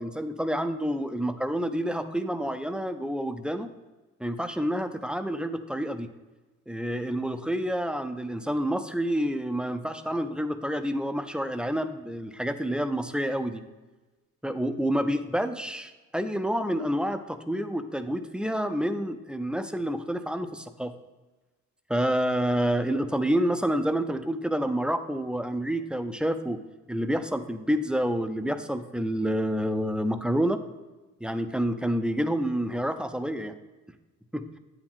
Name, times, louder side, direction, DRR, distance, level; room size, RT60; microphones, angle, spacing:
voice 1, 0.0-3.7 4.2-6.1 6.7-13.6 14.4-20.9 21.9-26.6 26.9-30.6 31.2-33.5 34.3-34.5, equal, 5° right, 9 dB, 0.4 m, -28 dB
8.5 x 4.9 x 3.6 m, 1.2 s
cardioid pair, 90°, 30 cm